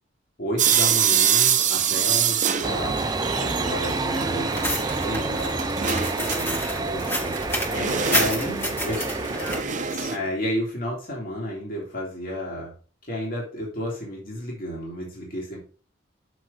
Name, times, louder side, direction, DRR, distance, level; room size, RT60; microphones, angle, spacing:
voice 1, 0.4-3.0 3.4-5.3 5.7-7.3 8.1-8.5 8.8-9.0 10.1-12.7 13.0-15.6, equal, 50° left, -2 dB, 2.5 m, -31 dB
sound 1, 0.6-10.2, right 8 dB, 40° right, 0.8 m, -26 dB
sound 2, 2.6-9.6, right 3 dB, 20° right, 0.5 m, -28 dB
sound 3, 4.5-9.6, equal, 10° left, 1.6 m, -30 dB
voice 2, 5.2-5.8 7.7-10.1, left 1 dB, 80° left, -2 dB, 3.1 m, -39 dB
6.3 x 5.7 x 5.0 m, 0.40 s
head